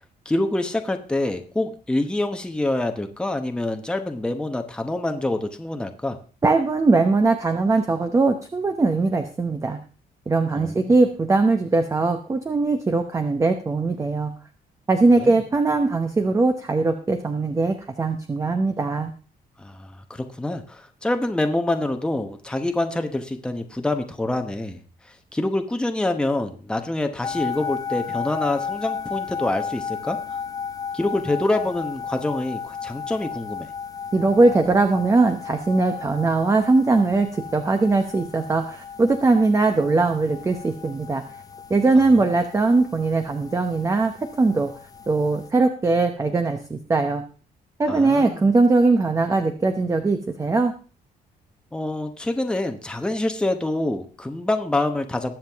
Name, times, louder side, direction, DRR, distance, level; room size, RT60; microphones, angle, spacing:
voice 1, 0.2-6.2 10.5-10.9 15.2-15.4 19.6-30.2 30.9-33.7 42.1-42.2 47.9-48.5 51.7-55.4, left 2 dB, 5° left, 5 dB, 1.0 m, -26 dB
voice 2, 6.4-9.8 10.3-14.3 14.9-19.1 34.1-41.2 41.7-44.7 45.1-47.2 47.8-50.7, right 3 dB, 20° right, 7 dB, 0.9 m, -20 dB
sound 1, 27.2-45.5, left 7 dB, 25° left, 0.7 m, -34 dB
20.5 x 7.5 x 3.5 m, 0.37 s
cardioid pair, 150°, 15 cm